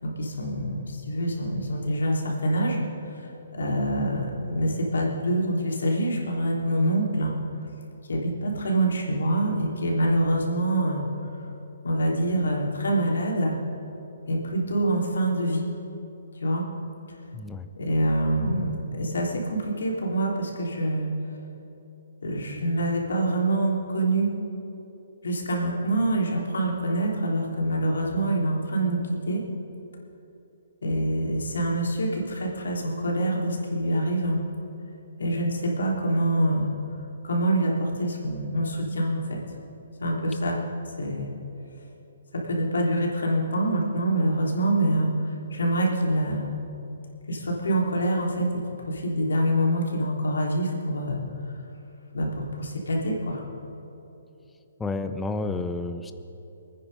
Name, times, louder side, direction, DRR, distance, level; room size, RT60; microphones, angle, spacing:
voice 1, 0.0-2.8 3.6-7.3 8.1-11.0 11.8-13.6 14.3-15.7 16.4-16.6 17.7-21.1 22.2-24.3 25.2-29.4 30.8-34.4 35.2-36.7 37.2-39.4 40.0-40.6 41.0-41.3 42.4-45.1 45.5-46.5 47.3-48.5 48.9-51.2 52.1-53.4, right 1 dB, 85° left, -2 dB, 3.4 m, -25 dB
voice 2, 17.3-17.7 54.8-56.1, left 3 dB, 5° left, 9 dB, 0.6 m, -30 dB
23.0 x 9.6 x 5.4 m, 3.0 s
hypercardioid pair, 165°, 0 cm